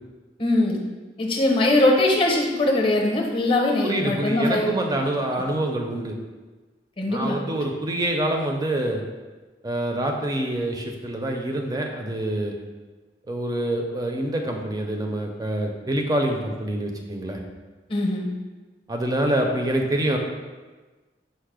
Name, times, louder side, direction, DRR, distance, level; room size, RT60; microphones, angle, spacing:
voice 1, 0.4-0.8 1.2-4.7 7.0-7.4 17.9-18.3, left 2 dB, 30° left, 0 dB, 0.7 m, -21 dB
voice 2, 3.8-6.2 7.1-9.0 9.6-12.5 13.3-17.4 18.9-20.2, right 1 dB, 20° right, 2 dB, 0.4 m, -26 dB
5.5 x 2.0 x 4.7 m, 1.3 s
head